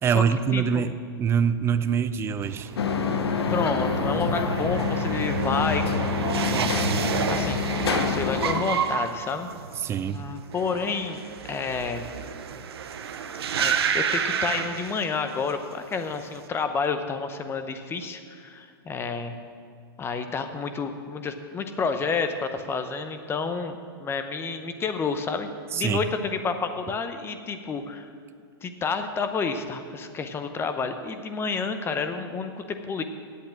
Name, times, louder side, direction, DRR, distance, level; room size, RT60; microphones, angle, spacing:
voice 1, 0.0-2.7 9.8-10.2 25.7-26.0, right 7 dB, 20° right, 12 dB, 0.5 m, -24 dB
voice 2, 0.5-0.9 3.5-7.6 8.0-9.5 10.1-12.0 13.6-19.3 20.0-28.1 28.6-33.0, left 5 dB, 20° left, 8 dB, 0.8 m, -30 dB
sound 1, 2.4-15.5 15.8-16.4, right 7 dB, 80° right, 0.9 m, -30 dB
sound 2, 2.8-8.6, left 6 dB, 90° left, 0.9 m, -27 dB
8.4 x 8.3 x 8.8 m, 2.2 s
hypercardioid pair, 130°, 13 cm